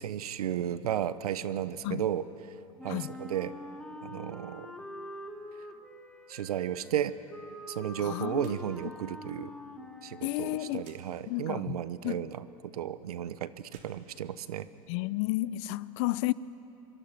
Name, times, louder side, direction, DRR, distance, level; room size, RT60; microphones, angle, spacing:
voice 1, 0.0-2.2 2.8-3.6 4.0-4.7 6.3-7.2 7.7-9.5 10.0-14.7, right 10 dB, 85° right, 0.9 m, -34 dB
Wind instrument woodwind instrument, 2.8-10.9, left 1 dB, 5° left, 1.7 m, -45 dB
voice 2, 8.0-8.5 10.2-10.8 11.3-11.8 12.0-12.3 14.9-16.3, left 18 dB, 55° left, 0.6 m, -32 dB
sound 1, 8.4-8.7 9.0-9.1 10.8-11.0 13.6-14.9, right 6 dB, 45° right, 3.4 m, -59 dB
25.5 x 23.0 x 6.0 m
hypercardioid pair, 115°, 19 cm